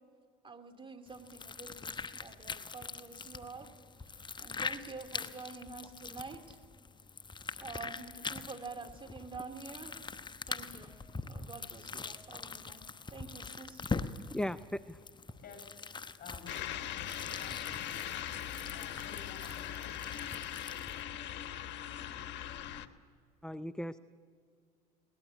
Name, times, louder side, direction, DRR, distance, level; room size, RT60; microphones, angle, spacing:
voice 1, 0.4-3.7 4.1-6.6 7.6-10.1 10.5-10.9 11.2-12.8 13.1-13.8, right 4 dB, 25° right, 5 dB, 2.5 m, -48 dB
sound 1, 1.1-21.0, left 4 dB, 20° left, 1.1 m, -43 dB
voice 2, 14.3-15.0 23.4-24.0, left 1 dB, 5° left, 14 dB, 0.5 m, -37 dB
voice 3, 16.2-20.9, left 5 dB, 45° left, 4 dB, 7.6 m, -54 dB
sound 2, 16.5-22.9, left 11 dB, 60° left, 1.3 m, -40 dB
22.5 x 18.5 x 8.2 m, 2.1 s
hypercardioid pair, 70°, 21 cm